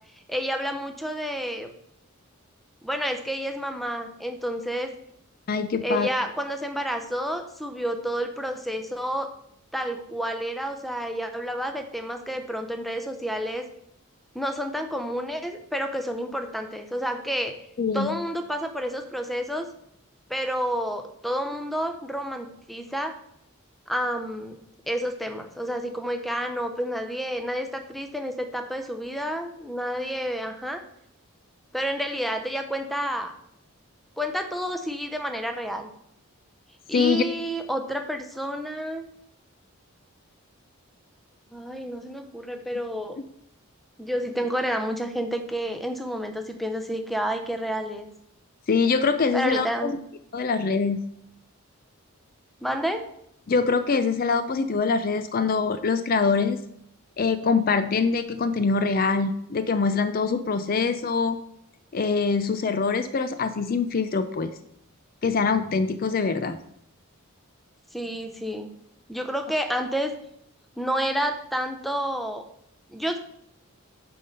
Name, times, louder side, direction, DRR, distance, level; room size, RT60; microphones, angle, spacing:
voice 1, 0.3-1.7 2.8-4.9 5.8-9.3 9.7-13.6 14.3-17.5 17.9-19.7 20.3-23.1 23.9-24.6 24.9-30.8 31.7-33.3 34.2-35.9 36.9-39.1 41.5-43.2 44.0-48.1 49.3-50.0 52.6-53.0 67.9-68.7 69.1-70.1 70.8-72.4 72.9-73.2, equal, ahead, 6 dB, 0.6 m, -29 dB
voice 2, 5.5-6.1 17.8-18.1 36.9-37.2 48.7-49.9 50.3-51.0 53.5-56.6 57.2-61.4 61.9-64.5 65.2-66.6, left 4 dB, 40° left, 10 dB, 0.4 m, -24 dB
9.3 x 3.8 x 6.6 m, 0.76 s
head